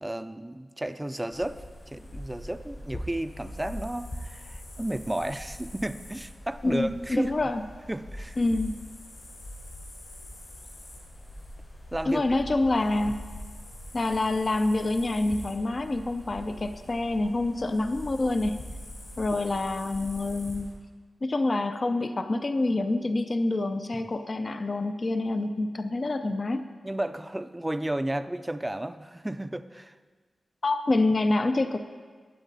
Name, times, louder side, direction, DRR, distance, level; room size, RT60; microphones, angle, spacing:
voice 1, 0.0-7.4 7.9-8.4 11.9-12.2 26.8-30.0, right 1 dB, 10° right, 10 dB, 0.5 m, -32 dB
sound 1, 1.3-20.7, left 1 dB, 60° left, 4.8 m, -43 dB
voice 2, 6.6-7.6 8.4-8.7 12.1-13.3 13.9-18.6 19.2-20.7 21.2-26.7 30.6-31.8, left 2 dB, 40° left, 8 dB, 0.6 m, -27 dB
21.0 x 9.1 x 4.1 m, 1.5 s
wide cardioid pair, 105°, 0 cm